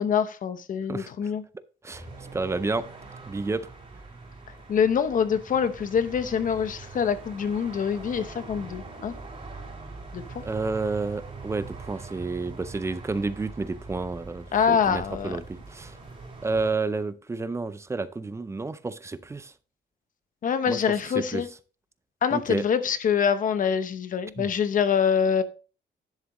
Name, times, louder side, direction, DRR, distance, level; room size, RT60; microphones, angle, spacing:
voice 1, 0.0-1.4 4.7-9.1 10.1-10.4 14.5-15.4 20.4-21.5 22.2-25.4, left 7 dB, 45° left, 0.8 m, -25 dB
sound 1, 1.9-16.7, right 3 dB, 30° right, 4.5 m, -43 dB
voice 2, 2.3-2.9 3.3-3.7 10.4-15.9 16.4-19.5 20.7-20.8 21.1-21.4 22.3-22.6 24.4-24.5, right 3 dB, 15° right, 0.4 m, -30 dB
10.5 x 7.4 x 3.0 m
wide cardioid pair, 170°, 18 cm